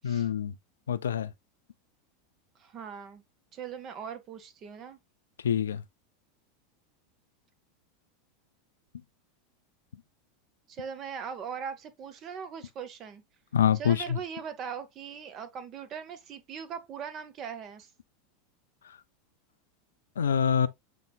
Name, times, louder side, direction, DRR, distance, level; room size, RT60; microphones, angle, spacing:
voice 1, 0.0-0.5 0.9-1.3 5.4-5.8 13.5-14.0 20.2-20.7, left 8 dB, 70° left, 0.4 m, -25 dB
voice 2, 2.6-3.2 3.5-5.0 10.7-13.2 13.7-17.9, right 7 dB, 35° right, 0.7 m, -40 dB
6.8 x 3.0 x 2.2 m
figure-of-eight pair, 85°, 0 cm